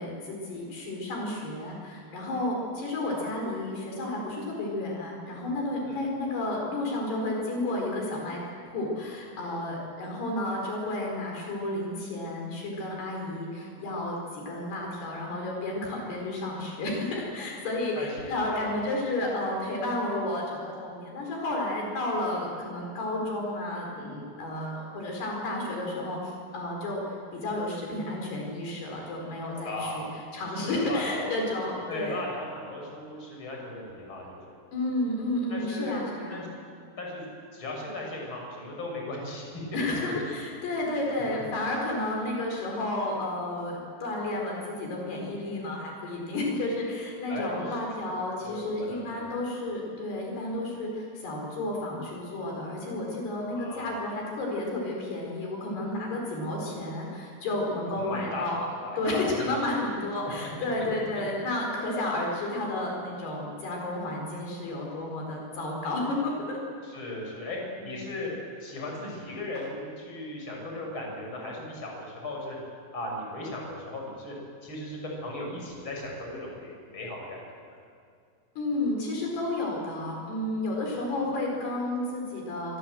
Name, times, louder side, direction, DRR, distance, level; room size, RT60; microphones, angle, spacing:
voice 1, 0.0-8.4 8.7-30.1 30.3-32.2 34.7-36.5 39.7-58.6 59.0-66.6 67.8-67.9 69.5-69.7 78.6-82.8, left 2 dB, 70° left, -1 dB, 6.6 m, -31 dB
voice 2, 18.0-18.8 29.6-30.1 30.5-31.3 31.9-34.6 35.5-36.5 37.0-37.3 37.5-39.5 47.3-47.8 48.4-49.3 53.5-54.1 57.9-58.4 58.8-59.7 66.8-68.3 68.6-72.6 72.9-74.3 74.6-77.8, left 1 dB, 30° left, -1 dB, 7.0 m, -37 dB
28.0 x 25.0 x 7.8 m, 2.3 s
omnidirectional pair, 4.8 m